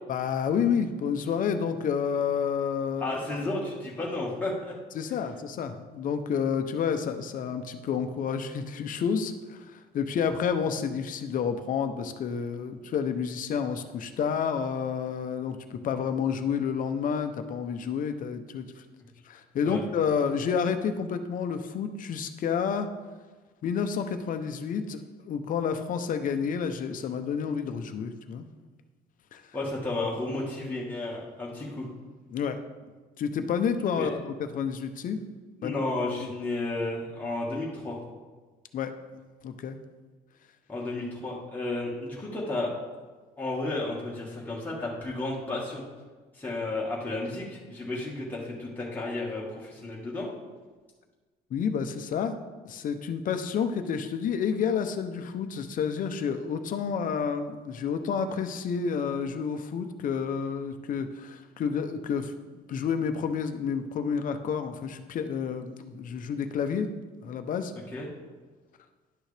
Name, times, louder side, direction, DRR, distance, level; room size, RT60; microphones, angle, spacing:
voice 1, 0.1-3.4 4.9-18.6 19.3-22.9 23.6-25.0 25.3-28.4 29.3-29.4 32.3-32.6 33.2-35.2 35.6-35.7 38.7-38.9 39.4-39.8 51.5-52.4 52.6-66.9 67.2-67.7, left 6 dB, 55° left, 8 dB, 0.7 m, -30 dB
voice 2, 3.0-4.7 19.6-19.8 29.5-31.9 34.0-34.1 35.6-38.0 40.7-42.7 43.4-45.8 46.3-50.3 67.9-68.1, left 2 dB, 10° left, -5 dB, 1.6 m, -32 dB
11.0 x 6.3 x 3.3 m, 1.3 s
cardioid pair, 110°, 17 cm